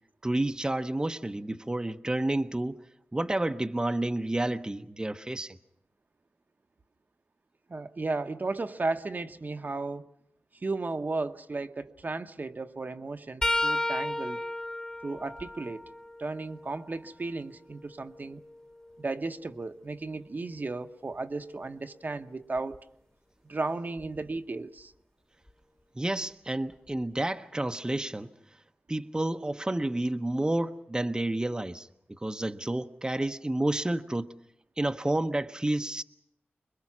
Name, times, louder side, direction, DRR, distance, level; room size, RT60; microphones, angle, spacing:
voice 1, 0.2-2.8 3.1-5.6 26.0-28.3 28.9-34.3 34.8-36.0, right 1 dB, 20° right, 0.8 m, -30 dB
voice 2, 7.7-10.1 10.5-14.4 15.0-15.8 16.2-18.4 19.0-22.8 23.4-24.9, right 3 dB, 45° right, 1.0 m, -34 dB
sound 1, 13.4-17.2 17.7-19.7 22.6-22.8 24.0-24.2 25.5-25.6, left 1 dB, 20° left, 1.4 m, -34 dB
25.5 x 22.0 x 6.1 m
wide cardioid pair, 65°, 4 cm